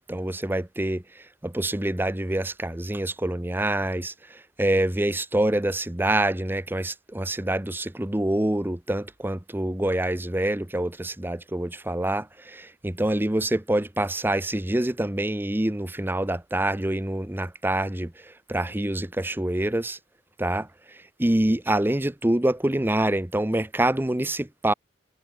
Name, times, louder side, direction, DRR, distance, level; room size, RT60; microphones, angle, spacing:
voice 1, 0.1-20.0 20.4-24.7, right 1 dB, 10° right, 0.8 m, -26 dB
head